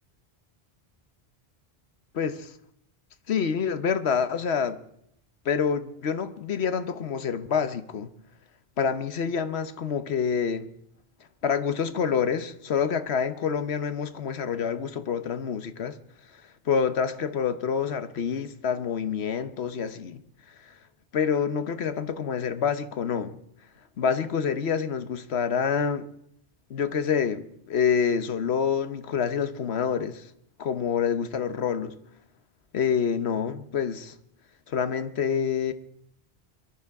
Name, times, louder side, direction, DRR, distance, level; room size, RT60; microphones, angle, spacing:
voice 1, 2.1-2.5 3.3-4.8 5.4-8.1 8.8-10.7 11.4-16.0 16.7-20.2 20.6-20.7 21.1-23.4 24.0-26.0 26.7-30.3 30.6-31.9 32.7-34.1 34.7-35.7, left 7 dB, 85° left, 1.2 m, -27 dB
23.5 x 11.5 x 4.7 m
omnidirectional pair, 1.1 m